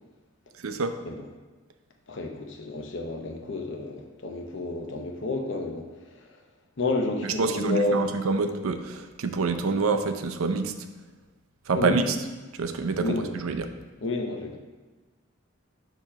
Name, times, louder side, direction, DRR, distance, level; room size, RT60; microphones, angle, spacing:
voice 1, 0.5-1.0 7.2-10.7 11.7-12.2 12.5-13.7, right 4 dB, 85° right, 8 dB, 0.5 m, -27 dB
voice 2, 2.1-5.9 6.3-6.4 6.8-8.1 11.7-12.1 13.0-13.3 14.0-14.6, left 2 dB, 60° left, 3 dB, 0.7 m, -30 dB
6.7 x 3.0 x 5.6 m, 1.2 s
head